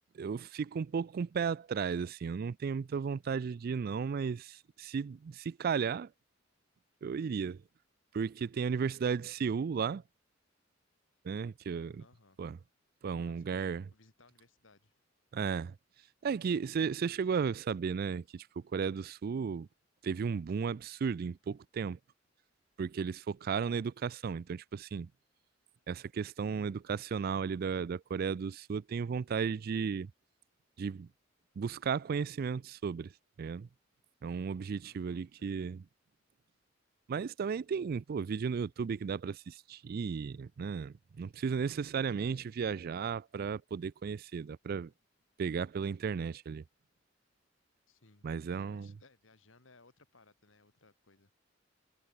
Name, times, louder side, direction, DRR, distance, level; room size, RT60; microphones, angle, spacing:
voice 1, 0.1-6.1 7.0-7.6 8.1-10.0 11.2-12.0 12.4-12.6 13.0-13.8 15.3-15.8 16.2-19.7 20.0-22.0 22.8-25.1 25.9-30.1 30.8-31.1 31.6-33.1 33.4-33.7 34.2-35.8 37.1-44.9 45.4-46.6 48.2-48.9, right 6 dB, 50° right, 0.3 m, -34 dB
voice 2, 12.0-12.4 13.3-15.0 34.8-35.6 41.5-41.8 47.9-51.3, left 3 dB, 80° left, 2.1 m, -64 dB
head